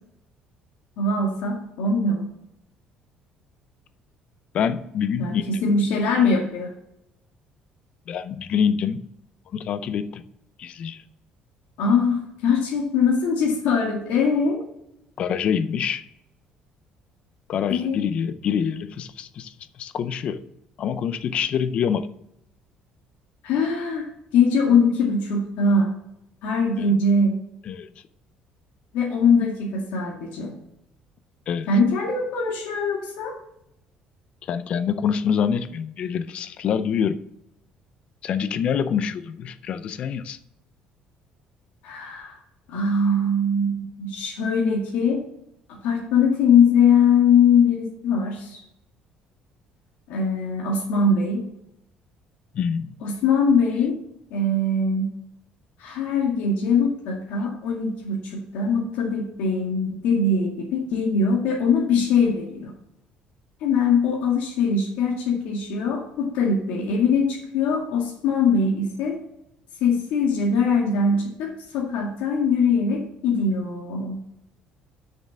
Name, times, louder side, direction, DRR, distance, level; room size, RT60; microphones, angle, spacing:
voice 1, 1.0-2.3 5.2-6.7 11.8-14.6 17.7-18.0 23.4-24.1 24.3-25.9 26.4-27.4 28.9-30.5 31.7-33.4 41.8-42.4 42.7-45.2 45.7-48.6 50.1-51.4 53.0-53.9 54.3-55.1 55.8-62.7 63.6-69.2 69.8-74.2, left 4 dB, 80° left, -2 dB, 2.1 m, -22 dB
voice 2, 4.5-5.5 8.1-9.0 9.5-10.2 10.6-11.0 15.2-16.0 17.5-19.5 19.8-20.4 20.8-22.1 27.7-27.9 31.5-31.7 34.5-37.2 38.2-40.4 52.5-52.9, left 7 dB, 45° left, 12 dB, 0.5 m, -25 dB
6.7 x 6.6 x 7.3 m, 0.81 s
cardioid pair, 165°, 3 cm